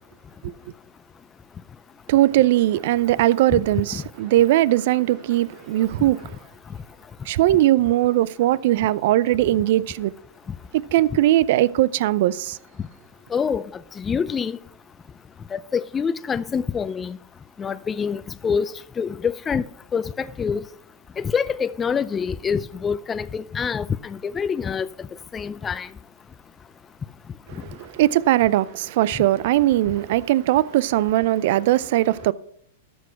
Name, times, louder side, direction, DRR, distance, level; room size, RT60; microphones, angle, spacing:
voice 1, 2.1-6.4 7.3-10.1 10.7-12.6 27.6-32.3, right 14 dB, 60° right, 0.5 m, -20 dB
voice 2, 13.3-13.7 14.0-14.6 15.5-17.2 17.6-19.7 19.9-20.6 21.2-24.9 25.3-25.9, left 6 dB, 20° left, 0.4 m, -26 dB
12.5 x 6.3 x 5.7 m
hypercardioid pair, 115°, 0 cm